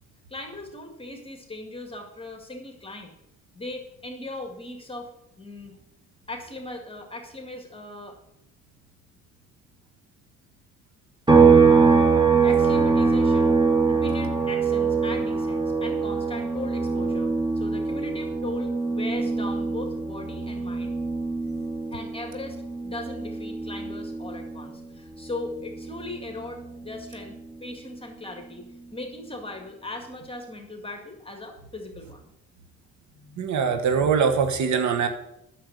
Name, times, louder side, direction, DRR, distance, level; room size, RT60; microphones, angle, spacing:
voice 1, 0.3-3.1 3.5-5.1 5.4-5.7 6.3-8.2 12.4-13.5 13.9-20.9 21.9-22.6 22.8-28.6 28.9-32.3 33.1-33.5, left 2 dB, 20° left, 3 dB, 2.0 m, -38 dB
sound 1, 11.3-24.8 25.2-27.4, right 4 dB, 15° right, 2.0 m, -23 dB
voice 2, 33.4-35.1, right 6 dB, 70° right, 7 dB, 1.4 m, -22 dB
9.2 x 6.8 x 8.0 m, 0.82 s
cardioid pair, 90°, 30 cm